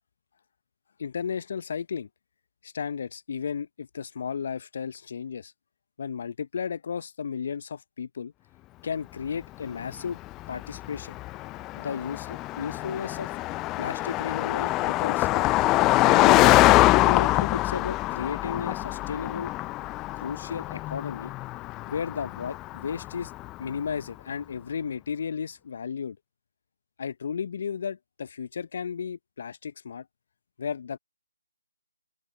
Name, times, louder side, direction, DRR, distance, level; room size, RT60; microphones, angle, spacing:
voice 1, 1.0-2.1 2.6-5.5 6.0-8.3 8.8-10.2 10.5-11.2 11.7-13.4 13.8-15.5 16.0-19.5 20.2-21.3 21.9-23.3 23.6-26.2 27.0-30.1 30.6-31.0, left 6 dB, 45° left, 1.0 m, -34 dB
Car passing by, 9.9-23.6, left 18 dB, 15° left, 0.6 m, -24 dB
open air
figure-of-eight pair, 150°, 0 cm